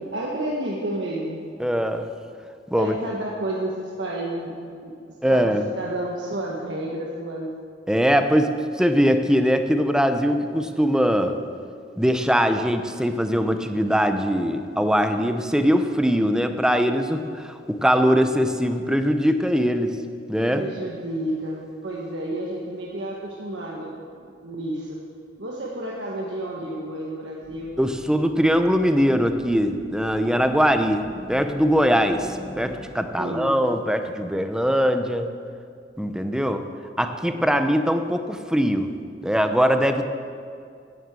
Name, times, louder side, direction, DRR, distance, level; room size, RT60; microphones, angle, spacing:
voice 1, 0.1-1.4 2.8-4.5 4.8-4.9 5.3-7.5 20.5-23.9 24.2-25.0 25.4-27.7 33.2-33.5, right 1 dB, 75° right, -4 dB, 1.5 m, -30 dB
voice 2, 1.6-2.1 2.7-2.9 5.2-5.7 7.9-11.4 12.0-20.0 20.3-20.7 27.8-35.3 36.0-36.7 37.0-38.9 39.2-40.1, equal, 5° right, 7 dB, 0.7 m, -21 dB
sound 1, 27.4-32.8, right 1 dB, 50° right, 2.9 m, -43 dB
11.0 x 9.9 x 7.6 m, 2.3 s
head